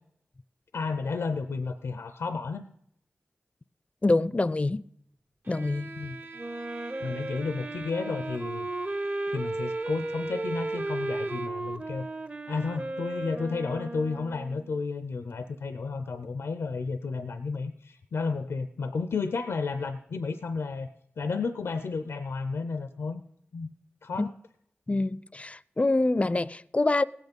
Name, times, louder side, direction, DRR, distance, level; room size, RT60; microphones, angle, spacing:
voice 1, 0.7-2.6 6.0-6.2 7.0-8.7 9.3-12.1 12.5-20.9 21.2-23.2 23.5-23.7 24.0-24.3, left 4 dB, 90° left, 0.5 m, -32 dB
voice 2, 4.0-4.9 5.5-6.0 24.2-24.3 24.9-27.0, left 2 dB, 30° left, 0.4 m, -26 dB
Bowed string instrument, 5.4-11.8, right 4 dB, 55° right, 0.9 m, -46 dB
Wind instrument woodwind instrument, 6.3-14.7, right 2 dB, 30° right, 0.7 m, -34 dB
17.5 x 8.2 x 5.3 m
cardioid pair, 45°, 4 cm